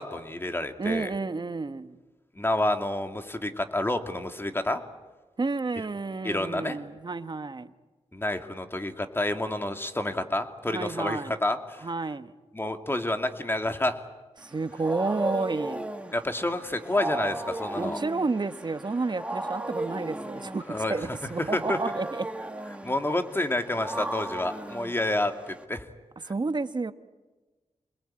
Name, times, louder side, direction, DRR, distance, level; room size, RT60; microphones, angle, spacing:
voice 1, 0.0-1.1 2.4-4.8 6.2-6.8 8.1-11.8 12.5-14.0 16.1-18.0 20.7-21.0 21.5-21.8 22.8-25.8, left 1 dB, 20° left, 2.5 m, -29 dB
voice 2, 0.8-2.0 5.4-7.7 10.7-11.3 11.8-12.3 14.4-15.8 17.8-22.2 26.2-26.9, right 3 dB, 40° right, 1.3 m, -30 dB
Wild animals, 14.4-25.6, right 1 dB, 10° right, 2.4 m, -36 dB
26.5 x 20.5 x 8.8 m
cardioid pair, 65°, 12 cm